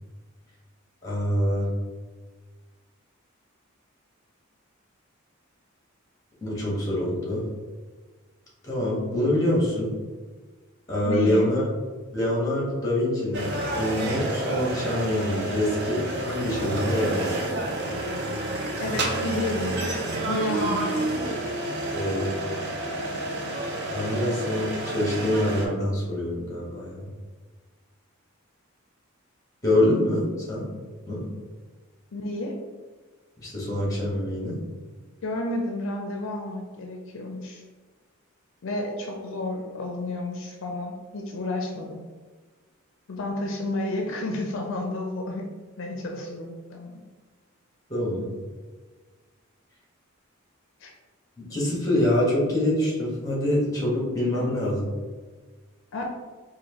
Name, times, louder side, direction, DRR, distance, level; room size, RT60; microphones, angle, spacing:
voice 1, 1.0-1.7 6.4-7.5 8.6-9.9 10.9-11.7 12.1-17.4 21.9-22.3 23.9-27.1 29.6-30.6 31.1-31.2 33.4-34.6 47.9-48.3 51.4-54.8, left 1 dB, 15° left, -5 dB, 1.3 m, -25 dB
voice 2, 11.1-11.5 18.8-19.8 20.3-21.0 32.1-32.6 35.2-37.6 38.6-42.0 43.1-45.5 45.8-47.0 50.8-50.9 54.3-54.5 55.9-56.0, left 2 dB, 65° left, 1 dB, 0.4 m, -31 dB
sound 1, 13.3-25.6, right 1 dB, 55° right, 0.6 m, -29 dB
4.4 x 2.5 x 2.9 m, 1.4 s
head